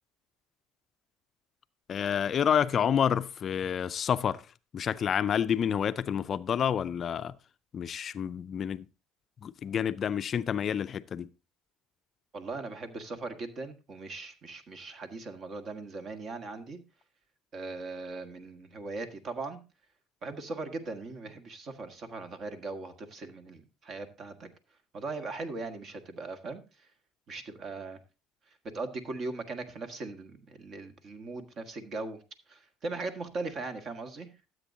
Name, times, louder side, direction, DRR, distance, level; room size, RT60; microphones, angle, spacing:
voice 1, 1.9-4.4 4.7-7.3 7.7-8.8 9.4-11.3, left 8 dB, 40° left, 0.4 m, -29 dB
voice 2, 12.3-16.8 17.5-19.6 20.2-24.5 24.9-26.9 27.3-28.0 28.6-32.2 32.5-34.3, right 3 dB, 45° right, 1.6 m, -39 dB
13.0 x 7.8 x 2.7 m
supercardioid pair, 105°, 0 cm